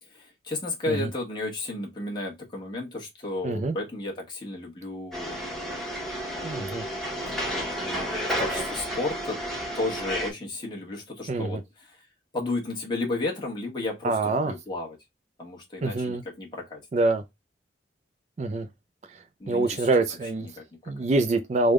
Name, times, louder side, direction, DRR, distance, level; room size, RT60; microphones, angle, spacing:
voice 1, 0.0-6.6 7.3-8.1 8.4-9.4 9.7-12.1 12.3-15.0 15.4-16.8 19.4-19.9 20.4-20.9, left 2 dB, 25° left, 1.0 m, -33 dB
voice 2, 3.4-3.8 6.4-6.8 11.3-11.6 14.0-14.5 15.8-16.2 16.9-17.2 18.4-18.7 19.5-20.5 20.9-21.7, right 2 dB, 35° right, 0.3 m, -25 dB
sound 1, 5.1-10.3, equal, ahead, 0.8 m, -31 dB
3.4 x 2.1 x 3.4 m
head